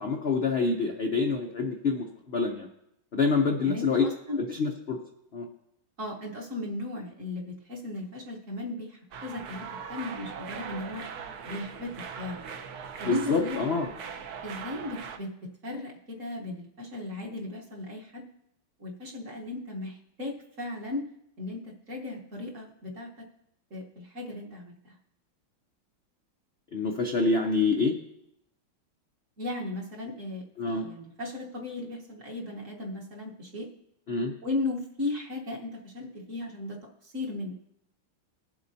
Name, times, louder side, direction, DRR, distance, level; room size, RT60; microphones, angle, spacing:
voice 1, 0.0-2.7 3.1-4.1 4.5-5.0 5.3-5.5 13.0-13.9 26.7-27.9 30.6-30.8 34.1-34.3, left 4 dB, 75° left, 1 dB, 0.5 m, -26 dB
voice 2, 3.6-4.4 6.0-11.0 11.4-12.4 13.0-13.6 14.4-18.2 18.8-21.1 21.4-23.1 23.7-25.0 29.4-33.7 34.4-37.6, left 2 dB, 45° right, -1 dB, 1.4 m, -36 dB
sound 1, 9.1-15.2, right 6 dB, 65° right, 1.0 m, -40 dB
21.5 x 7.6 x 2.7 m, 0.79 s
omnidirectional pair, 2.3 m